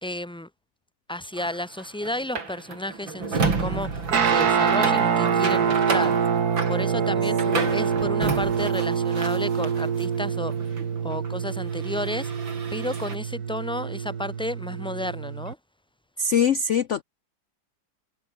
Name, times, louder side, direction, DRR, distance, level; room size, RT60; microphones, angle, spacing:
voice 1, 0.0-0.5 1.1-6.2 6.7-10.5 11.0-12.3 12.7-15.6, left 1 dB, 5° left, 1.8 m, -32 dB
sound 1, 1.3-10.1 10.4-13.2, right 4 dB, 85° right, 4.4 m, -32 dB
Guitar, 4.1-15.5, right 7 dB, 55° right, 2.1 m, -25 dB
voice 2, 16.2-17.0, left 6 dB, 65° left, 0.7 m, -23 dB
omnidirectional pair, 2.1 m